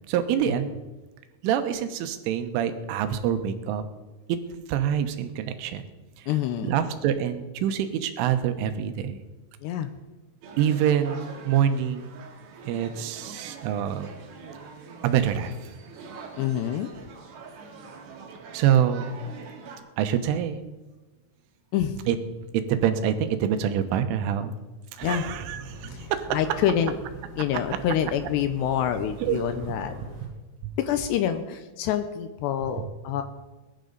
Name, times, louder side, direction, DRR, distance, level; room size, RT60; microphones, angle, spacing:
voice 1, 0.1-0.7 1.4-3.8 4.3-4.4 4.7-5.8 6.2-6.3 6.6-9.2 10.6-12.1 12.7-14.1 15.0-15.5 18.5-19.2 20.0-20.6 22.1-22.2 22.5-24.6 24.9-26.4 29.2-29.4 30.6-30.8, right 9 dB, 85° right, 8 dB, 3.5 m, -25 dB
voice 2, 6.3-6.8 9.6-9.9 16.4-16.9 21.7-22.0 25.0-25.2 25.9-26.9 27.3-29.9 30.8-33.2, left 10 dB, 80° left, 9 dB, 2.6 m, -27 dB
sound 1, 10.4-19.8, right 5 dB, 60° right, 3.3 m, -44 dB
sound 2, 25.0-30.3, right 2 dB, 20° right, 3.2 m, -42 dB
21.0 x 11.0 x 4.0 m, 1.2 s
omnidirectional pair, 5.6 m